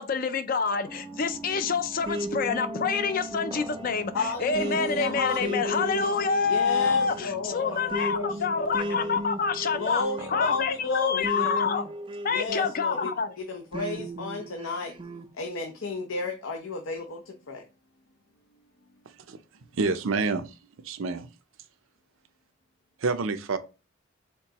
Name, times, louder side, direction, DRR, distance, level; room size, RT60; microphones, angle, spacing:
voice 1, 0.0-10.0 10.3-11.8 12.2-13.3, left 5 dB, 45° left, 0.4 m, -27 dB
sound 1, 0.9-9.9, right 1 dB, 20° left, 0.8 m, -43 dB
sound 2, 2.0-13.1 13.7-15.3, right 1 dB, 25° right, 0.4 m, -36 dB
voice 2, 4.1-6.1 6.4-9.2 9.7-11.8 12.3-15.0 15.3-17.6, left 3 dB, 85° left, 0.7 m, -33 dB
voice 3, 19.7-20.5 20.8-21.3 23.0-23.6, right 4 dB, 80° right, 0.6 m, -27 dB
4.5 x 3.7 x 2.9 m
head